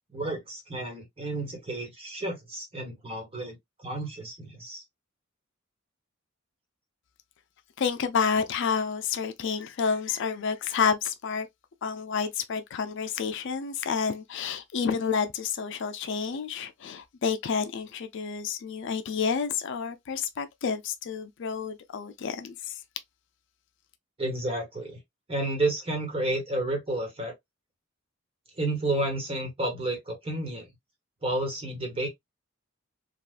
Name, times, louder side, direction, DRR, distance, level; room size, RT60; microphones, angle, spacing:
voice 1, 0.1-4.8 24.2-25.0 25.3-27.3 28.6-30.7 31.2-32.1, right 2 dB, 30° right, 1.3 m, -31 dB
voice 2, 7.8-11.5 11.8-22.7, left 6 dB, 60° left, 0.4 m, -29 dB
3.5 x 2.3 x 2.5 m
head